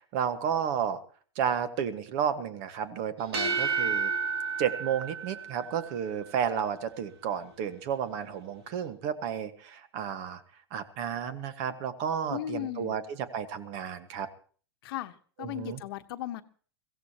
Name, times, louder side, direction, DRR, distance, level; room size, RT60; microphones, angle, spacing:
voice 1, 0.1-1.0 1.3-4.1 4.6-10.4 10.7-14.3 15.4-15.8, right 8 dB, 50° right, 11 dB, 1.5 m, -32 dB
sound 1, 3.2-6.0, right 5 dB, 75° right, 2.6 m, -31 dB
voice 2, 12.3-13.0 14.8-16.4, left 13 dB, 65° left, 10 dB, 1.1 m, -36 dB
22.5 x 16.0 x 2.9 m, 0.43 s
hypercardioid pair, 115°, 13 cm